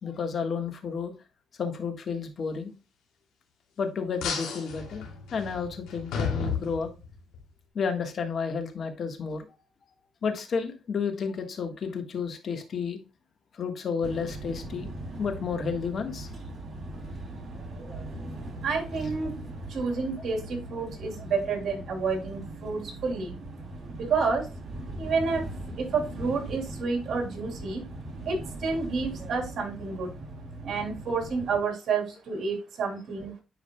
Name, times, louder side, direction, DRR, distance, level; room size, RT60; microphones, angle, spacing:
voice 1, 0.0-1.1 1.6-2.7 3.8-5.0 5.3-6.9 7.7-9.5 10.2-13.0 13.5-14.9 15.2-16.3, left 5 dB, 55° left, 6 dB, 1.4 m, -31 dB
sound 1, 4.2-7.4, left 6 dB, 90° left, 2.5 m, -33 dB
sound 2, 14.0-31.6, right 1 dB, 40° right, 3.1 m, -40 dB
voice 2, 18.6-19.3 19.7-23.3 24.0-24.5 25.0-25.4 25.8-27.9 28.2-30.1 30.6-33.3, right 4 dB, 60° right, 2 dB, 2.9 m, -29 dB
10.0 x 4.8 x 2.2 m, 0.29 s
cardioid pair, 90°, 0 cm